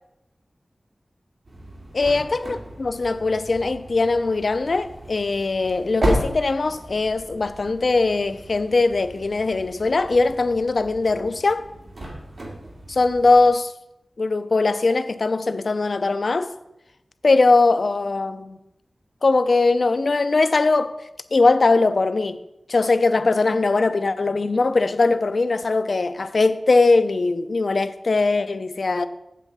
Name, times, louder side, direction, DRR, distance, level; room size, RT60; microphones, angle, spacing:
sound 1, 1.4-13.5, right 1 dB, 60° right, 2.4 m, -34 dB
voice 1, 1.9-11.7 12.9-13.7 14.2-16.5 17.2-18.6 19.2-20.9 21.3-22.4 22.7-29.1, left 3 dB, 65° left, 0.5 m, -20 dB
8.4 x 8.0 x 4.0 m
wide cardioid pair, 80°, 0 cm